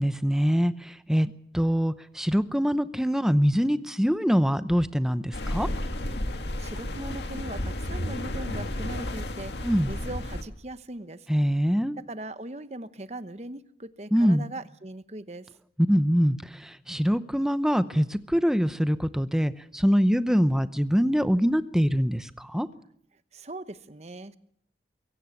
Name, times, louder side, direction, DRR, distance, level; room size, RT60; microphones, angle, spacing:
voice 1, 0.0-5.7 9.6-9.9 11.3-12.0 14.1-14.5 15.8-22.7, equal, 5° right, 12 dB, 0.7 m, -24 dB
sound 1, 5.3-10.4, left 1 dB, 80° left, 2.1 m, -32 dB
voice 2, 6.6-9.5 9.9-11.3 12.1-15.5 23.3-24.4, right 2 dB, 40° right, 12 dB, 1.0 m, -39 dB
23.5 x 16.5 x 7.3 m, 0.67 s
head